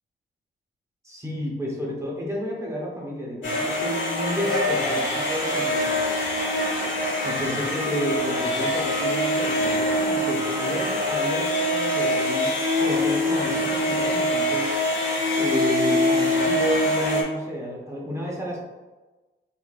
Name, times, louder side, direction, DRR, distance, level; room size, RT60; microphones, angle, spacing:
voice 1, 1.0-5.9 7.2-14.7 15.4-18.6, left 1 dB, 15° right, -4 dB, 0.6 m, -31 dB
sound 1, 3.4-17.2, left 1 dB, 75° left, 1.0 m, -24 dB
3.7 x 3.5 x 2.3 m, 1.2 s
wide cardioid pair, 170°, 20 cm